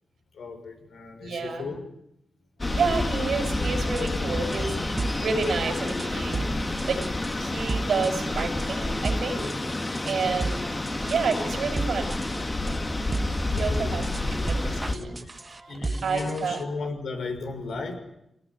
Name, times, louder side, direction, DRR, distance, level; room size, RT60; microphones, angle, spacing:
voice 1, 0.3-1.8 10.1-10.2 13.5-14.0 14.9-15.3 15.7-18.0, left 4 dB, 90° left, 3 dB, 6.3 m, -35 dB
voice 2, 1.2-1.7 2.7-6.4 6.9-7.0 7.3-9.5 10.0-10.6 11.0-12.2 13.6-15.1 16.0-16.6, right 4 dB, 80° right, 4 dB, 6.6 m, -29 dB
sound 1, 2.6-15.0, left 2 dB, 25° left, 1.8 m, -29 dB
sound 2, 3.6-16.6, right 2 dB, 30° right, 1.4 m, -35 dB
25.0 x 19.0 x 10.0 m, 0.81 s
cardioid pair, 90°, 0 cm